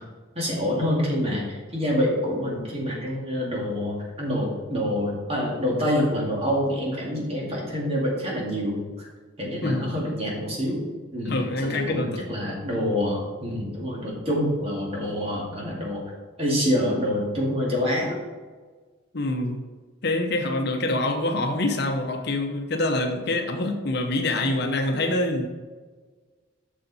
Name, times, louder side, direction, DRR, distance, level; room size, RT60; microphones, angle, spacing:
voice 1, 0.4-9.1 9.4-16.0 16.4-18.2, equal, 30° right, -3 dB, 2.1 m, -26 dB
voice 2, 9.6-10.0 11.2-12.2 19.1-19.6 20.0-25.5, left 2 dB, 55° left, 4 dB, 0.9 m, -25 dB
7.3 x 6.5 x 4.1 m, 1.4 s
head